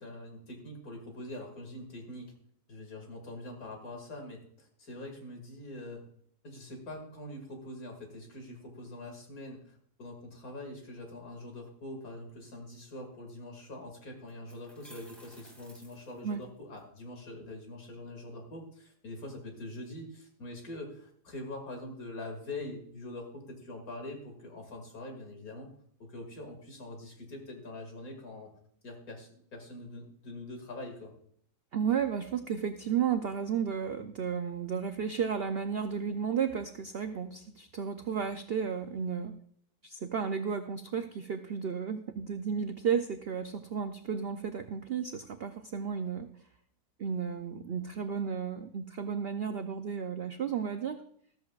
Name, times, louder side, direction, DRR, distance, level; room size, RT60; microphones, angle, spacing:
voice 1, 0.0-2.3 2.7-6.0 6.4-25.7 26.0-28.5 28.8-31.1, left 1 dB, 60° left, 2 dB, 2.6 m, -44 dB
sound 1, 14.3-16.8, right 1 dB, ahead, 2.3 m, -55 dB
voice 2, 31.7-39.3 39.8-46.3 47.0-51.0, right 7 dB, 75° right, 8 dB, 0.5 m, -33 dB
13.5 x 13.5 x 2.4 m, 0.62 s
omnidirectional pair, 1.7 m